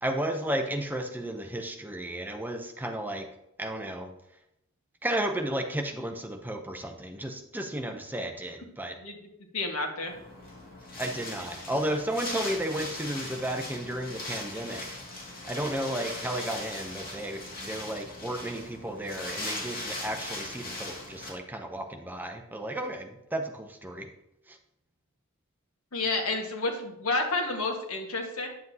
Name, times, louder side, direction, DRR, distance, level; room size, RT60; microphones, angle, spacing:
voice 1, 0.0-3.3 3.6-4.1 5.0-9.0 11.0-14.9 15.4-24.1 24.5-24.6, right 1 dB, 10° right, 4 dB, 0.6 m, -33 dB
voice 2, 9.5-10.1 25.9-28.5, left 2 dB, 85° left, 2 dB, 1.4 m, -30 dB
Wind, 10.1-21.3, left 2 dB, 40° left, 2.1 m, -39 dB
9.2 x 7.4 x 2.7 m, 0.83 s
head